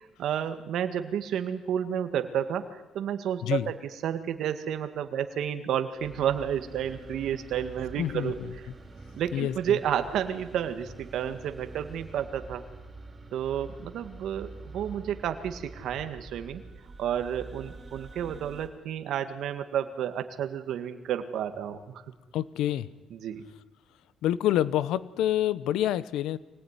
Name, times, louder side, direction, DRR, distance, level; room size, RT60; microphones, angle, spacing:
voice 1, 0.2-3.7 4.0-8.4 9.2-12.6 13.3-16.6 17.0-22.0 23.1-23.4, right 9 dB, 75° right, 8 dB, 1.8 m, -31 dB
sound 1, 6.0-18.7, right 3 dB, 30° right, 4.2 m, -46 dB
voice 2, 8.0-8.5 9.3-9.8 22.3-22.9 24.2-26.4, left 12 dB, 90° left, 17 dB, 1.0 m, -27 dB
24.5 x 19.0 x 9.8 m, 1.1 s
cardioid pair, 90°, 0 cm